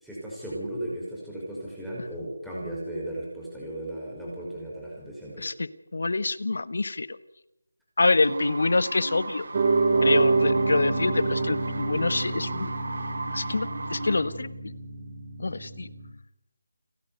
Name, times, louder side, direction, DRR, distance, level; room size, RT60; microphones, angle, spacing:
voice 1, 0.0-5.5, right 1 dB, ahead, -8 dB, 5.3 m, -36 dB
voice 2, 5.4-7.2 8.0-9.4 10.0-12.7 13.3-14.7 15.4-15.9, left 3 dB, 65° left, 15 dB, 1.5 m, -26 dB
sound 1, 8.2-14.2, right 2 dB, 60° right, 4.5 m, -36 dB
Piano, 9.5-16.1, right 3 dB, 40° right, 3.6 m, -27 dB
29.5 x 11.0 x 9.4 m, 0.86 s
figure-of-eight pair, 165°, 0 cm